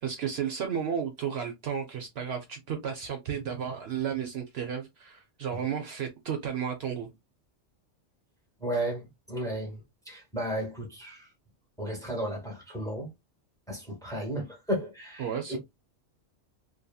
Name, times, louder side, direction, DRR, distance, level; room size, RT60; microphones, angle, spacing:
voice 1, 0.0-7.1 15.2-15.6, right 8 dB, 65° right, 0.7 m, -33 dB
voice 2, 8.6-11.3 11.8-13.1 13.7-15.6, right 1 dB, 5° left, 0.9 m, -34 dB
2.7 x 2.7 x 2.3 m
omnidirectional pair, 1.3 m